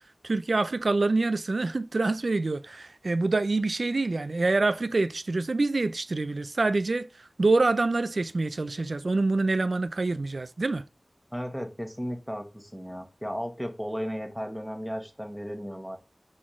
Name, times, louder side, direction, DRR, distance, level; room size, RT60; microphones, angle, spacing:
voice 1, 0.2-7.1 7.4-10.8, right 3 dB, 80° right, 0.3 m, -26 dB
voice 2, 11.3-16.0, equal, 5° left, 1.0 m, -35 dB
4.0 x 3.7 x 3.1 m
wide cardioid pair, 50°, 0 cm